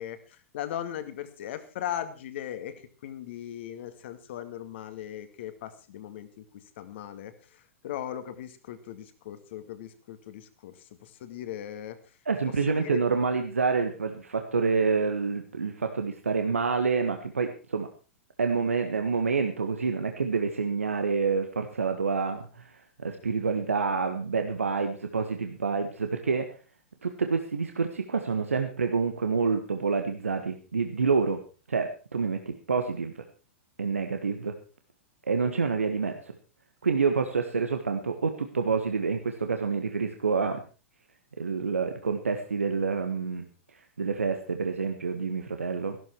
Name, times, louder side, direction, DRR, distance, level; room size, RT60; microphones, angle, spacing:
voice 1, 0.0-6.4 6.8-12.0 12.7-13.1, left 11 dB, 55° left, 10 dB, 2.1 m, -38 dB
voice 2, 12.2-17.9 18.4-26.6 27.0-31.4 31.7-33.2 33.8-34.5 35.3-36.3 36.8-40.6 41.4-43.5 44.0-46.0, right 5 dB, 80° right, 6 dB, 1.5 m, -28 dB
15.0 x 12.5 x 4.6 m, 0.35 s
figure-of-eight pair, 100°, 7 cm